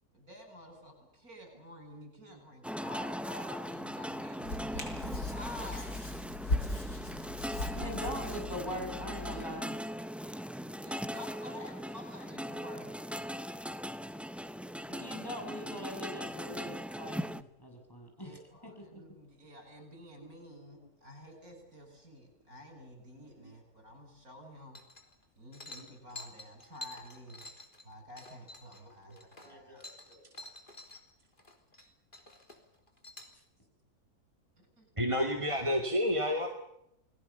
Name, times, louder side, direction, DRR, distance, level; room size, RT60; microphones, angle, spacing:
voice 1, 0.1-5.9 7.6-8.1 10.8-12.9 18.2-24.8 25.3-27.5 27.8-29.8 34.8-34.9, left 1 dB, 65° right, 4 dB, 8.4 m, -50 dB
sound 1, 2.6-17.4, equal, ahead, 0.5 m, -40 dB
Hands, 4.4-9.4, left 2 dB, 80° left, 5.7 m, -38 dB
voice 2, 7.8-9.8 14.9-18.4 18.8-19.0 28.8-30.2, equal, 15° left, 2 dB, 6.9 m, -42 dB
sound 2, 24.7-25.2 25.5-31.0 31.3-33.3, left 2 dB, 30° left, 3.6 m, -49 dB
voice 3, 35.0-36.5, equal, 20° right, 2 dB, 2.5 m, -29 dB
30.0 x 20.5 x 7.1 m, 0.80 s
omnidirectional pair, 1.6 m